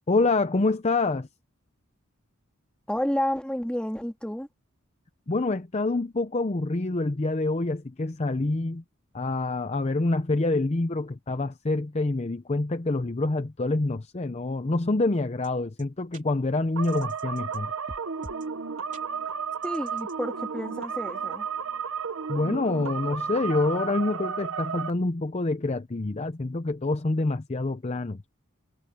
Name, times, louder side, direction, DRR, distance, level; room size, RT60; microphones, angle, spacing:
voice 1, 0.1-1.3 5.3-8.8 9.1-17.7 22.3-28.2, left 2 dB, 30° left, 0.6 m, -26 dB
voice 2, 2.9-4.5 19.6-21.5, equal, 5° left, 2.1 m, -30 dB
sound 1, 15.4-15.5 15.8-15.9 16.1-16.2 16.8-17.6 17.9-18.5 18.9-19.0 19.6-20.1, right 1 dB, 35° right, 3.5 m, -45 dB
sound 2, 16.8-24.9, right 6 dB, 65° right, 0.9 m, -33 dB
head